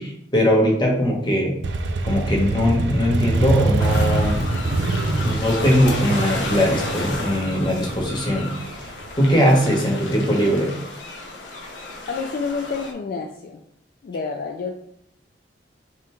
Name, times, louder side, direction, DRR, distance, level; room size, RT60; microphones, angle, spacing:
voice 1, 0.0-1.5 2.0-4.4 5.2-8.5 9.2-10.7, equal, 25° left, -1 dB, 1.0 m, -20 dB
Motorcycle, 1.6-9.3, right 2 dB, 70° right, 0.4 m, -24 dB
sound 1, 3.8-12.9, left 2 dB, 90° left, 0.8 m, -33 dB
voice 2, 12.1-13.6 14.0-14.7, left 4 dB, 55° left, 2 dB, 0.3 m, -28 dB
5.9 x 3.0 x 2.3 m, 0.73 s
head